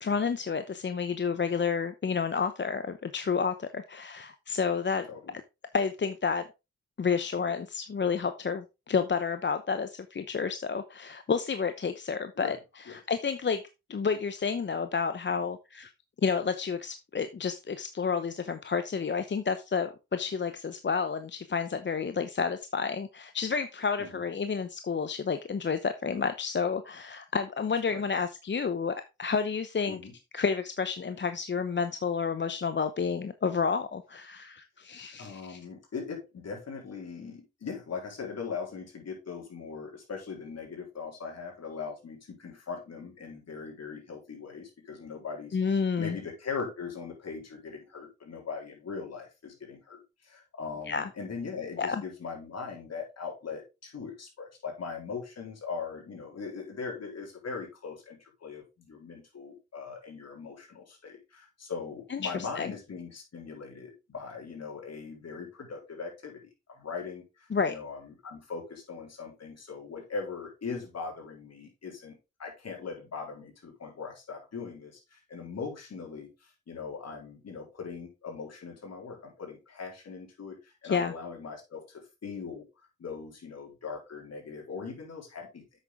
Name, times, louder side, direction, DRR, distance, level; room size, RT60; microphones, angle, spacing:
voice 1, 0.0-5.1 5.7-6.4 7.0-13.6 13.9-15.9 16.2-30.0 30.3-35.6 45.5-46.2 50.9-51.1 51.8-52.0 62.1-62.7 67.5-67.7 80.8-81.1, left 5 dB, 40° left, 10 dB, 0.8 m, -30 dB
voice 2, 35.2-45.6 46.0-85.7, left 5 dB, 60° left, 0 dB, 3.9 m, -40 dB
8.0 x 6.3 x 3.6 m, 0.26 s
supercardioid pair, 55°, 30 cm